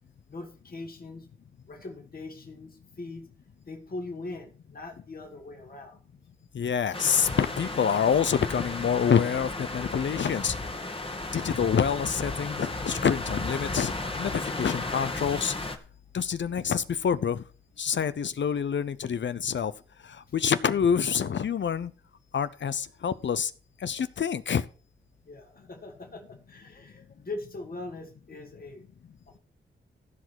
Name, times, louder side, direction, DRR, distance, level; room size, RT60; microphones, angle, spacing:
voice 1, 0.3-1.3 1.7-3.3 3.7-6.0 25.3-28.9 29.3-29.4, left 2 dB, 45° left, 3 dB, 2.4 m, -41 dB
voice 2, 6.5-10.5 11.3-13.9 14.2-15.5 16.1-17.4 17.8-19.7 20.1-21.9 22.3-23.5 23.8-24.6, left 7 dB, 65° left, 14 dB, 0.7 m, -27 dB
sound 1, 6.9-15.8, left 2 dB, 25° left, 1.8 m, -34 dB
14.5 x 5.0 x 6.3 m, 0.39 s
cardioid pair, 60°, 21 cm